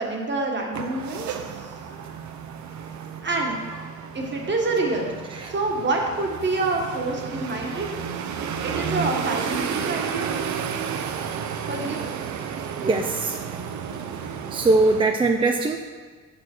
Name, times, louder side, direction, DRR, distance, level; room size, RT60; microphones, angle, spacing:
voice 1, 0.0-1.7 3.2-3.6 4.1-5.2 5.5-7.9 8.6-10.3 11.7-12.1, right 2 dB, 35° right, 1 dB, 1.4 m, -27 dB
sound 1, 0.7-15.0, right 7 dB, 70° right, 0.7 m, -32 dB
voice 2, 12.8-13.4 14.2-15.9, right 3 dB, 15° right, 3 dB, 0.4 m, -22 dB
7.0 x 6.2 x 4.4 m, 1.5 s
cardioid pair, 90°, 30 cm